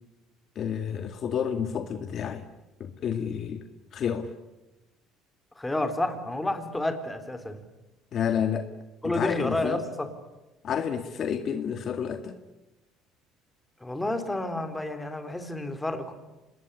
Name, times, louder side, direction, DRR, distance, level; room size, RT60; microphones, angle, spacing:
voice 1, 0.6-2.4 2.8-3.6 3.9-4.3 8.1-8.7 9.0-9.8 10.6-12.4, left 8 dB, 50° left, 8 dB, 2.0 m, -30 dB
voice 2, 5.6-7.6 9.0-10.1 13.8-16.1, left 1 dB, 10° left, 8 dB, 3.7 m, -30 dB
25.5 x 21.0 x 10.0 m, 1.0 s
cardioid pair, 105°, 0 cm